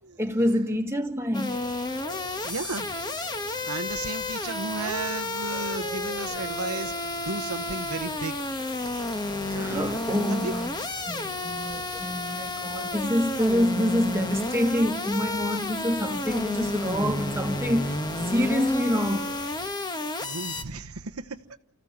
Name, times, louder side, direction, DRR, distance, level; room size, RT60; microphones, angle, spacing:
voice 1, 0.2-1.6 9.5-10.7 11.1-19.3, equal, 10° right, 1.6 m, -27 dB
sound 1, 1.3-20.6, left 2 dB, 20° left, 1.2 m, -31 dB
sound 2, 1.5-19.7, left 1 dB, 45° left, 3.0 m, -45 dB
voice 2, 2.4-2.9 3.7-8.5 9.5-10.5 20.2-21.4, right 3 dB, 75° right, 1.0 m, -34 dB
29.5 x 15.0 x 7.4 m
head